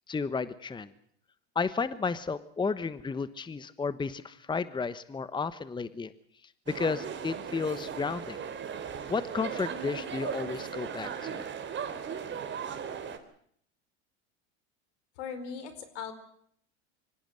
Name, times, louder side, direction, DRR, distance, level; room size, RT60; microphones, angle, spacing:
voice 1, 0.1-0.9 1.5-6.1 6.7-8.4 9.1-11.4, left 4 dB, 15° left, 15 dB, 1.1 m, -32 dB
sound 1, 6.7-13.2, right 7 dB, 35° right, 3.6 m, -37 dB
voice 2, 15.2-16.1, left 6 dB, 80° left, 11 dB, 4.7 m, -39 dB
24.5 x 17.0 x 7.9 m, 0.66 s
supercardioid pair, 100°, 34 cm